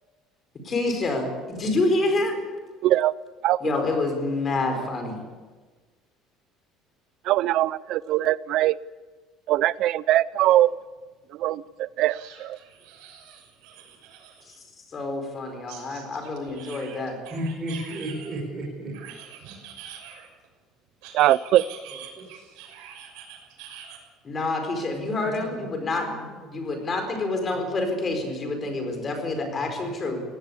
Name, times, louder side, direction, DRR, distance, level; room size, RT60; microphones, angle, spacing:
voice 1, 0.6-2.4 3.6-5.2 14.9-17.2 18.8-18.9 24.2-26.2 26.5-30.2, left 2 dB, 20° left, 5 dB, 4.5 m, -27 dB
voice 2, 1.3-1.7 4.2-4.8 17.3-19.1 19.5-19.6 22.2-22.3 24.9-26.2 26.5-26.7 27.5-27.8 29.4-30.2, right 1 dB, 20° right, -4 dB, 5.4 m, -36 dB
voice 3, 2.8-3.1 3.4-3.7 7.2-8.8 9.5-10.8 11.3-12.6 21.1-21.6, right 14 dB, 50° right, 19 dB, 0.6 m, -22 dB
sound 1, 10.5-10.6 10.9-11.0 12.0-14.6 15.7-18.4 18.9-20.5 21.0-24.0, right 8 dB, 90° right, 6.3 m, -45 dB
21.0 x 18.0 x 8.5 m, 1.4 s
cardioid pair, 180°, 0 cm